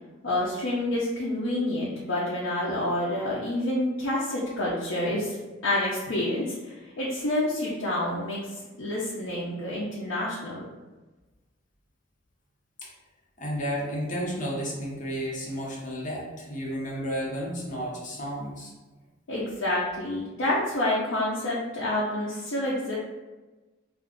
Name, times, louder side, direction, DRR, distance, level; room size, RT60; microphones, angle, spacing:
voice 1, 0.2-5.4 5.6-8.4 8.8-10.7 19.3-23.0, left 1 dB, 80° left, -7 dB, 0.6 m, -28 dB
voice 2, 13.4-18.7, equal, 45° left, -4 dB, 0.9 m, -32 dB
2.5 x 2.3 x 3.6 m, 1.2 s
head